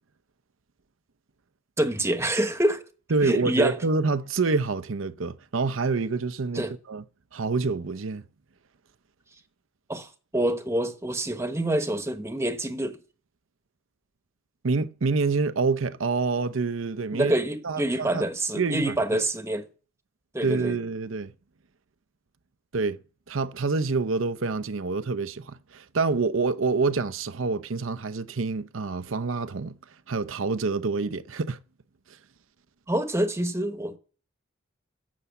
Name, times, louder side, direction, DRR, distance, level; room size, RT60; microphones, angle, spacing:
voice 1, 1.8-2.8 3.2-3.7 6.5-6.7 9.9-13.0 17.1-19.7 20.3-20.8 32.9-34.0, right 1 dB, 15° right, 1.1 m, -26 dB
voice 2, 3.1-7.0 7.3-8.2 14.6-17.3 17.6-18.3 18.5-19.2 20.4-21.3 22.7-23.0 23.3-29.7 30.1-31.6, right 4 dB, 75° right, 0.7 m, -27 dB
12.5 x 8.2 x 7.1 m
head